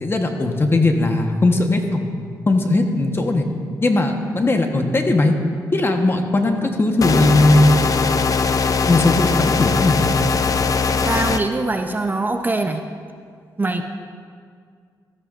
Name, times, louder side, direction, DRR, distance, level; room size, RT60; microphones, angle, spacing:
voice 1, 0.0-2.1 2.5-3.5 3.8-5.3 5.7-7.7 8.9-10.0, left 2 dB, 30° left, 4 dB, 1.2 m, -18 dB
sound 1, 7.0-11.4, left 5 dB, 45° left, 0.6 m, -20 dB
voice 2, 11.1-12.8 13.6-13.8, right 2 dB, 25° right, 5 dB, 0.7 m, -22 dB
13.5 x 13.5 x 2.5 m, 2.1 s
cardioid pair, 75°, 8 cm